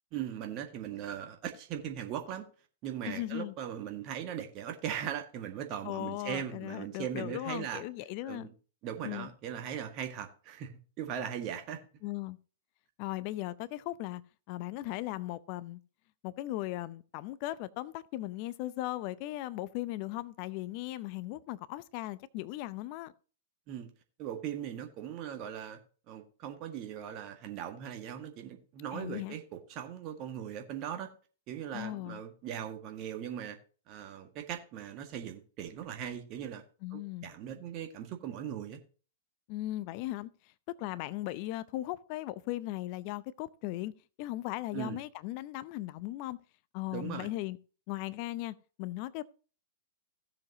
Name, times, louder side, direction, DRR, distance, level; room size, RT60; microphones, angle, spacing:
voice 1, 0.1-2.4 2.8-7.8 8.3-8.5 8.8-10.7 11.0-11.8 23.7-23.9 24.2-25.8 26.1-31.1 31.5-33.6 33.9-36.6 36.9-38.8 44.7-45.0 46.9-47.3, right 9 dB, 40° right, 1.8 m, -39 dB
voice 2, 3.1-3.5 5.8-8.5 9.0-9.3 12.0-12.4 13.0-14.2 14.5-15.8 16.2-23.1 28.9-29.4 31.7-32.2 36.8-37.3 39.5-40.3 40.7-43.9 44.2-46.4 46.7-47.6 47.9-49.2, left 16 dB, 45° left, 0.6 m, -37 dB
16.5 x 7.2 x 2.8 m
figure-of-eight pair, 105°, 0 cm